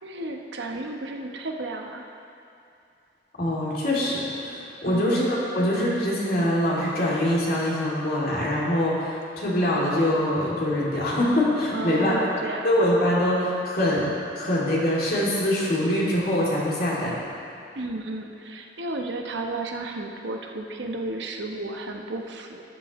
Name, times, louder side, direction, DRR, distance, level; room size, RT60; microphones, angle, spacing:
voice 1, 0.0-2.1 4.9-5.2 11.7-12.7 17.7-22.6, right 2 dB, 85° right, 2 dB, 1.0 m, -33 dB
voice 2, 3.4-12.1 12.6-14.1 14.3-17.1, left 1 dB, 55° left, -6 dB, 2.7 m, -24 dB
13.0 x 11.0 x 3.1 m, 2.6 s
head